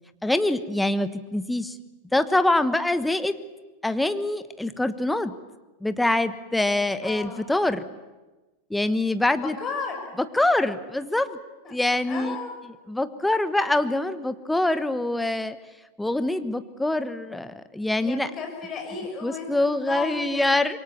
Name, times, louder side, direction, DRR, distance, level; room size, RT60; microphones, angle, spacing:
voice 1, 0.2-1.8 2.1-3.4 3.8-5.3 5.8-7.9 8.7-9.6 10.2-11.4 11.7-12.4 12.9-15.6 16.0-18.3 19.2-20.8, left 2 dB, 5° left, 11 dB, 1.1 m, -24 dB
voice 2, 7.0-7.5 9.4-10.1 11.6-11.7 12.1-12.5 18.0-20.6, left 5 dB, 25° left, 2 dB, 6.3 m, -34 dB
26.5 x 23.0 x 7.3 m, 1.2 s
figure-of-eight pair, 90°, 0 cm